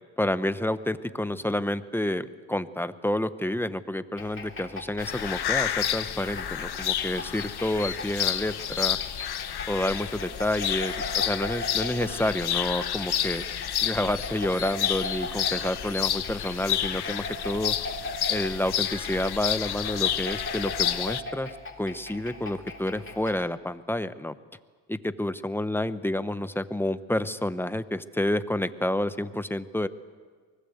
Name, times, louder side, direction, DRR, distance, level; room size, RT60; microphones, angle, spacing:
voice 1, 0.2-9.0 9.7-13.4 13.8-17.7 18.3-21.5 21.8-24.4 24.9-29.9, left 1 dB, 5° left, 12 dB, 1.0 m, -29 dB
sound 1, 4.2-23.5, left 2 dB, 25° left, 3.3 m, -40 dB
sound 2, 5.0-21.2, left 10 dB, 50° left, 1.2 m, -30 dB
24.0 x 20.0 x 8.0 m, 1.5 s
supercardioid pair, 80°, 49 cm